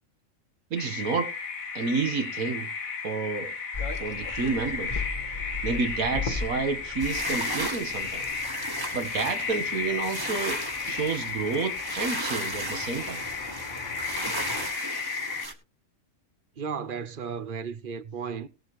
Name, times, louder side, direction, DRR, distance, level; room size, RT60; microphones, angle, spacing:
voice 1, 0.7-1.3 1.8-2.7 3.0-3.5 4.0-5.0 5.6-8.3 8.9-13.2, right 4 dB, 80° right, 1.9 m, -30 dB
sound 1, 0.8-15.5, left 5 dB, 75° left, 2.1 m, -34 dB
sound 2, 3.7-14.7, left 3 dB, 35° left, 1.7 m, -39 dB
sound 3, 7.0-15.5, right 1 dB, 15° right, 1.6 m, -36 dB
voice 2, 16.6-18.5, right 6 dB, 45° right, 0.9 m, -34 dB
19.5 x 7.4 x 3.1 m
omnidirectional pair, 1.5 m